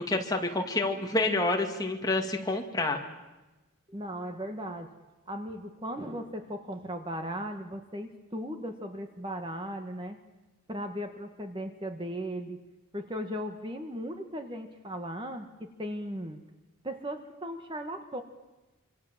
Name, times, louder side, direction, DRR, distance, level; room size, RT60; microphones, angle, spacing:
voice 1, 0.0-3.0, left 2 dB, 20° left, 3 dB, 2.3 m, -28 dB
voice 2, 3.9-4.9 5.3-10.2 10.7-12.6 12.9-16.4 16.8-18.2, equal, 25° right, 6 dB, 1.6 m, -37 dB
26.5 x 25.5 x 7.5 m, 1.1 s
head